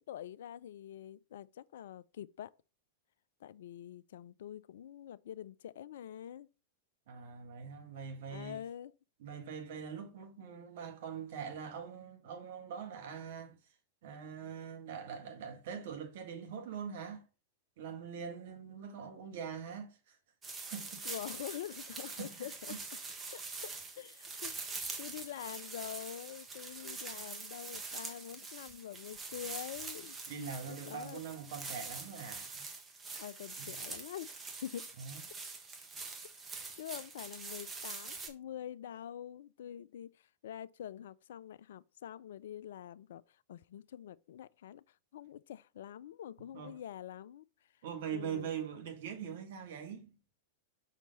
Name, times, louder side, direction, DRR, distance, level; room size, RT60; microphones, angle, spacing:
voice 1, 0.0-2.5 3.4-6.5 8.3-8.9 21.0-22.8 23.3-30.2 30.4-31.2 33.2-34.3 34.6-34.9 36.8-44.8 45.1-47.4 48.1-48.5, left 10 dB, 65° left, 0.3 m, -46 dB
voice 2, 7.1-8.6 9.2-13.5 14.0-17.2 17.8-20.2 20.7-21.0 22.2-22.8 30.3-32.6 33.6-33.8 35.0-35.2 46.5-46.7 47.8-50.1, right 7 dB, 60° right, 1.6 m, -43 dB
sound 1, 20.4-38.3, right 4 dB, 20° right, 1.3 m, -44 dB
5.7 x 4.4 x 4.0 m
figure-of-eight pair, 100°, 0 cm